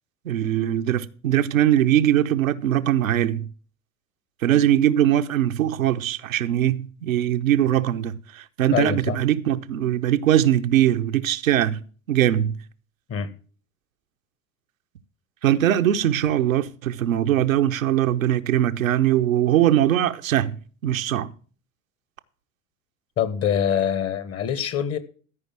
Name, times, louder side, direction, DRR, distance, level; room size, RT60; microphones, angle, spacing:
voice 1, 0.2-3.5 4.4-11.8 12.1-12.5 15.4-20.6 20.8-21.3, right 11 dB, 85° right, 0.8 m, -21 dB
voice 2, 8.7-9.2 13.1-13.3 23.2-25.0, left 9 dB, 35° left, 1.4 m, -24 dB
13.5 x 5.2 x 7.4 m
hypercardioid pair, 75°, 40 cm